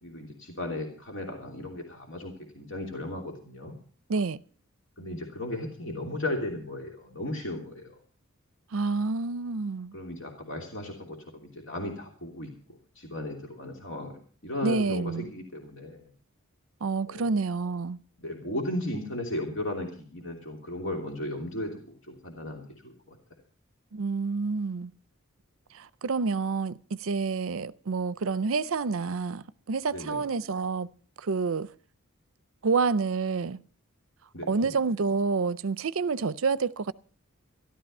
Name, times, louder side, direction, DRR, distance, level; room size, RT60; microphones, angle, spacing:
voice 1, 0.0-3.7 5.0-7.9 9.9-12.5 13.0-14.2 14.4-16.1 17.1-17.3 18.2-21.8 22.1-23.2 29.9-30.2 34.3-34.7, left 1 dB, 60° left, 3.0 m, -35 dB
voice 2, 8.7-10.0 14.6-15.3 16.8-18.0 23.9-24.9 25.7-30.9 31.2-31.7 32.6-33.6 34.5-36.9, right 4 dB, 65° right, 0.5 m, -28 dB
14.0 x 12.5 x 5.4 m
head